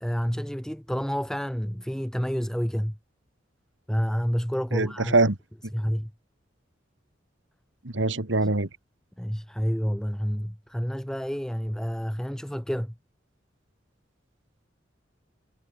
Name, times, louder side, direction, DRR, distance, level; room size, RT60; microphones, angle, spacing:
voice 1, 0.0-3.0 3.9-5.1 5.7-6.1 9.2-12.9, equal, 5° left, 1.0 m, -29 dB
voice 2, 4.7-5.4 7.8-8.7, right 2 dB, 70° right, 2.2 m, -23 dB
head